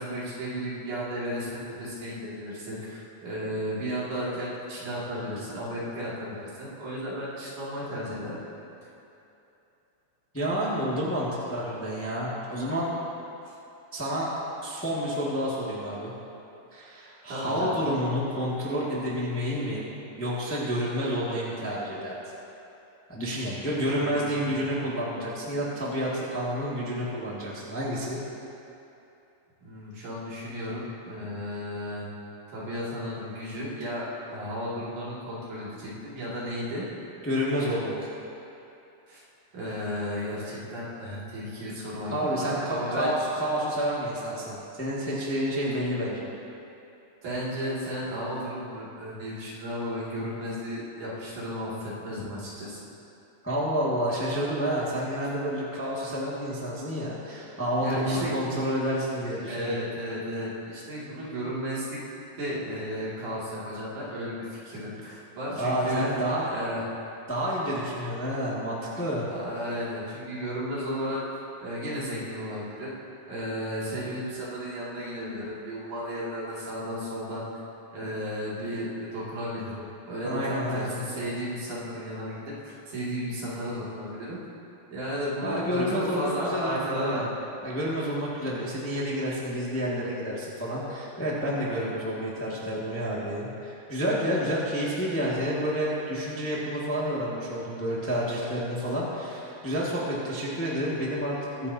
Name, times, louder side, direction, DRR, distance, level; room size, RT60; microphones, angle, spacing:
voice 1, 0.0-8.4 13.4-13.5 17.3-17.8 23.8-24.7 29.6-32.1 32.5-36.9 39.1-39.2 39.5-43.2 47.2-52.8 57.8-58.3 59.3-62.0 62.4-66.2 66.4-66.8 69.3-71.2 71.6-72.9 73.3-77.5 77.9-84.4 84.9-87.2 91.6-91.8, equal, 70° right, -8 dB, 4.1 m, -34 dB
voice 2, 10.3-12.9 13.9-14.3 14.6-16.1 16.7-19.9 20.1-22.2 23.1-28.2 37.2-38.1 42.1-46.3 53.4-59.8 65.5-66.5 67.3-69.3 80.2-81.0 85.4-87.2 87.6-101.7, equal, 5° left, -7 dB, 1.4 m, -29 dB
22.0 x 10.5 x 2.9 m, 2.8 s
omnidirectional pair, 3.6 m